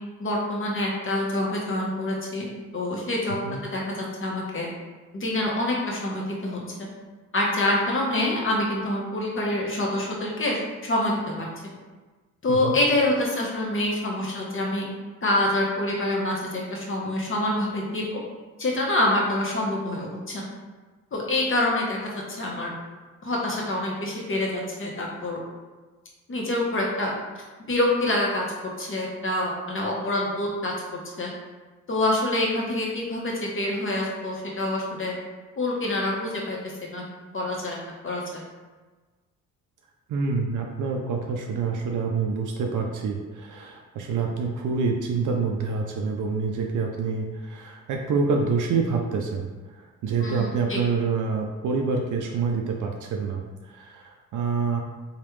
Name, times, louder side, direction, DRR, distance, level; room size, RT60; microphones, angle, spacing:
voice 1, 0.2-2.4 2.7-3.4 3.7-4.7 5.1-6.8 7.3-11.5 12.4-14.8 15.2-18.2 18.6-20.4 21.1-22.0 22.3-22.7 23.2-25.4 26.3-27.1 27.7-28.4 28.8-30.7 31.2-31.3 31.9-35.1 35.6-36.6 36.9-37.0 37.3-37.8 38.0-38.4 50.2-50.8, left 1 dB, 35° left, -2 dB, 1.0 m, -26 dB
voice 2, 40.1-49.5 49.8-54.8, right 4 dB, 55° right, 1 dB, 0.5 m, -27 dB
3.0 x 2.4 x 3.1 m, 1.3 s
hypercardioid pair, 45°, 37 cm